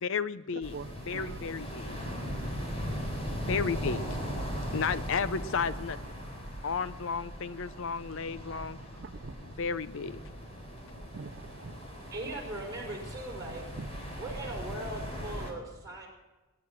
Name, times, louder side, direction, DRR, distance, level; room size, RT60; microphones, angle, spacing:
voice 1, 0.0-0.8 1.1-2.0 3.3-4.0 4.7-6.0 6.6-8.8 9.6-10.2, left 5 dB, 60° left, 0.5 m, -33 dB
sound 1, 0.6-15.5, equal, 30° left, 3.8 m, -38 dB
voice 2, 0.7-1.4 3.4-3.5 8.9-9.5 11.1-11.9 13.8-14.2, right 4 dB, 50° right, 0.4 m, -45 dB
voice 3, 12.1-13.6 14.2-16.1, right 2 dB, 15° right, 5.1 m, -39 dB
20.5 x 10.5 x 6.1 m
head